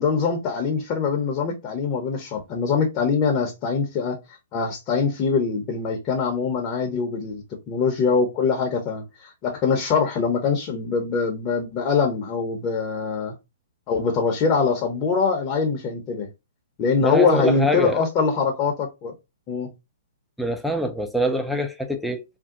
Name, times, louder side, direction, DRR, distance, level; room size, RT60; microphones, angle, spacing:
voice 1, 0.0-4.2 4.5-13.3 13.9-16.3 16.8-19.1 19.5-19.7, left 5 dB, 30° left, 0.7 m, -23 dB
voice 2, 17.0-18.1 20.4-22.2, equal, ahead, 0.4 m, -24 dB
2.6 x 2.2 x 3.6 m
hypercardioid pair, 135°, 0 cm